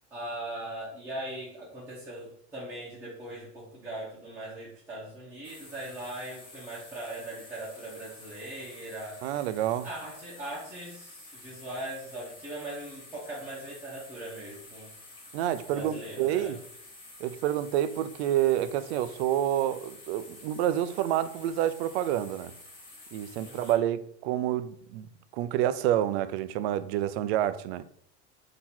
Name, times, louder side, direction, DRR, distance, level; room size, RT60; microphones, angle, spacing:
voice 1, 0.1-9.2 9.8-14.9 15.7-16.5 23.4-23.8, right 1 dB, 5° right, 1.0 m, -40 dB
sound 1, 5.4-23.7, left 2 dB, 15° left, 1.5 m, -50 dB
voice 2, 9.2-9.9 15.3-16.6 17.2-22.5 23.1-25.1 25.3-27.8, right 12 dB, 70° right, 0.5 m, -28 dB
3.7 x 2.9 x 4.3 m
supercardioid pair, 155°, 33 cm